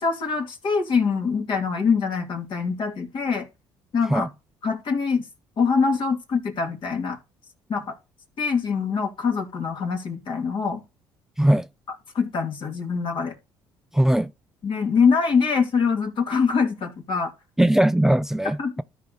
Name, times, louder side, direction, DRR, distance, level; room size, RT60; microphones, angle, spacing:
voice 1, 0.0-3.5 3.9-4.3 4.6-5.3 5.6-7.2 7.7-8.0 8.4-10.8 12.1-13.4 14.6-17.3 18.6-18.7, left 5 dB, 55° left, 2.8 m, -24 dB
voice 2, 11.4-11.7 13.9-14.3 17.6-18.8, right 1 dB, 5° right, 0.5 m, -20 dB
13.0 x 4.9 x 4.0 m
supercardioid pair, 70°, 10 cm